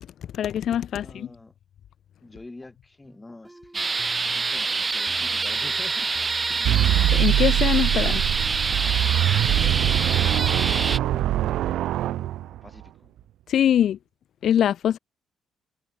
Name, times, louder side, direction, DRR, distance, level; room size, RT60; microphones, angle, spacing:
voice 1, 0.3-1.3 6.5-8.2 13.5-14.0 14.4-15.0, left 10 dB, 65° left, 0.5 m, -23 dB
voice 2, 0.9-1.5 2.2-6.1 9.2-11.5 12.0-13.1, left 2 dB, 15° left, 4.5 m, -46 dB
sound 1, 3.0-10.6 11.0-11.7, right 1 dB, 10° right, 2.8 m, -46 dB
sound 2, 3.7-11.0, right 4 dB, 30° right, 0.4 m, -26 dB
sound 3, 6.6-12.8, right 13 dB, 85° right, 0.7 m, -23 dB
cardioid pair, 90°, 0 cm